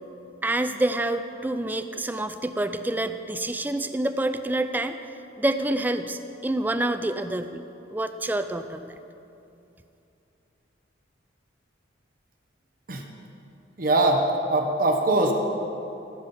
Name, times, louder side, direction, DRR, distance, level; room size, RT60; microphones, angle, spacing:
voice 1, 0.4-5.0 5.4-7.6 7.9-8.9, right 1 dB, 10° right, 9 dB, 0.3 m, -27 dB
voice 2, 13.8-15.3, right 2 dB, 45° right, 3 dB, 0.9 m, -22 dB
14.5 x 5.5 x 6.9 m, 2.8 s
head